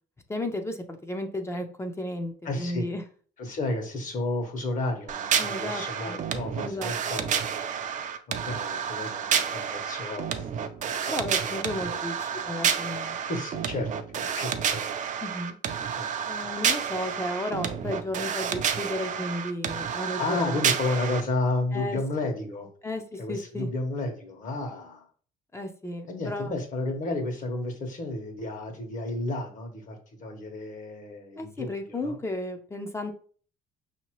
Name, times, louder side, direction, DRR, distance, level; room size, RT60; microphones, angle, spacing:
voice 1, 0.3-3.0 5.4-6.2 6.6-6.9 11.1-13.2 15.2-15.6 16.3-20.6 21.7-22.0 22.8-23.7 25.5-26.5 31.4-33.1, left 1 dB, 15° left, 5 dB, 0.6 m, -33 dB
voice 2, 2.4-2.9 3.4-7.4 8.3-11.1 11.5-12.0 13.3-14.8 16.0-16.1 20.2-22.7 23.2-25.1 26.1-32.2, left 2 dB, 50° left, 3 dB, 1.3 m, -32 dB
sound 1, 5.1-21.2, right 7 dB, 45° right, 0.5 m, -30 dB
5.5 x 2.8 x 3.0 m, 0.43 s
cardioid pair, 110°, 17 cm